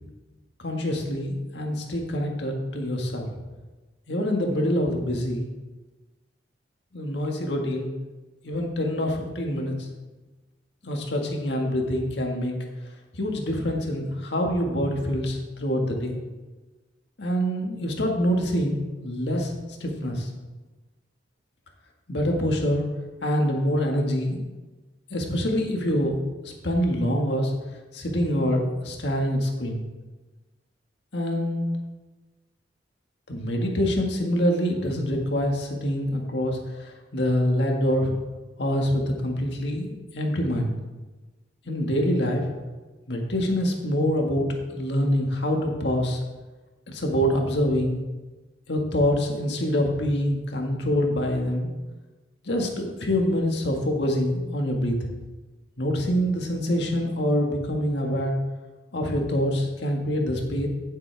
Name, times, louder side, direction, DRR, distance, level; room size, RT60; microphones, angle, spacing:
voice 1, 0.6-3.3 4.1-5.5 6.9-7.9 8.4-9.9 10.8-12.5 13.1-16.2 17.2-19.5 19.8-20.3 22.1-22.9 23.2-24.4 25.1-27.5 27.9-29.8 31.1-31.7 33.3-38.1 38.6-40.7 41.7-42.4 43.1-44.4 44.7-46.2 46.9-48.0 48.7-51.7 52.5-55.0 55.8-58.3 58.9-60.7, equal, 65° left, 1 dB, 1.8 m, -25 dB
15.5 x 7.5 x 3.5 m, 1.2 s
head